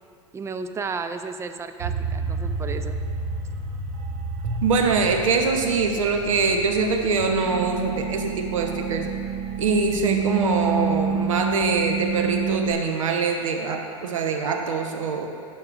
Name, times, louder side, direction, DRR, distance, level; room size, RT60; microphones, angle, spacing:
voice 1, 0.3-3.0, right 4 dB, 15° right, 9 dB, 0.4 m, -33 dB
sound 1, 1.8-12.7, right 5 dB, 45° right, 0.9 m, -29 dB
voice 2, 4.6-9.1 9.6-15.3, right 4 dB, 80° right, 4 dB, 0.8 m, -23 dB
11.5 x 6.3 x 2.5 m, 2.3 s
hypercardioid pair, 95°, 17 cm